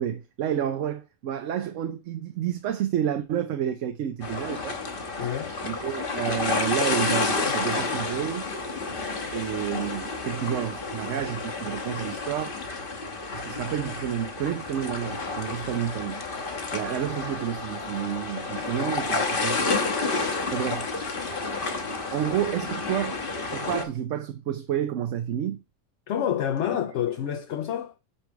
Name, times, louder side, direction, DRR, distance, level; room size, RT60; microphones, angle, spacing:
voice 1, 0.0-4.8 5.6-8.5 9.3-12.6 13.3-16.2 16.7-19.8 20.5-20.9 22.1-25.6, right 10 dB, 70° right, 1.0 m, -30 dB
sound 1, 4.2-23.8, left 3 dB, 45° left, 1.1 m, -30 dB
voice 2, 5.2-5.6 26.1-27.9, left 9 dB, 65° left, 0.9 m, -28 dB
9.0 x 3.2 x 4.6 m
omnidirectional pair, 1.4 m